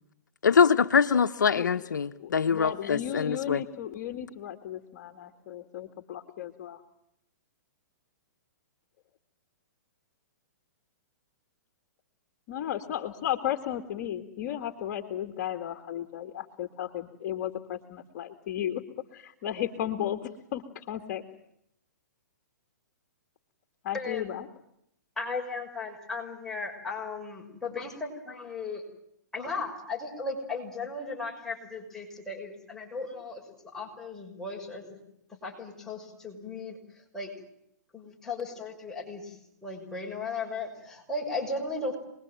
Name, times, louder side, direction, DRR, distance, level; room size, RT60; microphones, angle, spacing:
voice 1, 0.4-3.6, left 6 dB, 85° left, 8 dB, 1.1 m, -23 dB
voice 2, 2.2-6.8 12.5-18.8 19.1-21.2 23.8-24.5, left 11 dB, 45° left, 5 dB, 2.3 m, -34 dB
voice 3, 23.9-24.3 25.2-28.8 29.3-33.4 33.7-34.8 35.4-36.8 37.1-37.3 37.9-39.4 39.6-42.0, left 3 dB, 5° left, -1 dB, 6.1 m, -36 dB
28.0 x 21.5 x 9.2 m, 0.77 s
hypercardioid pair, 135°, 10 cm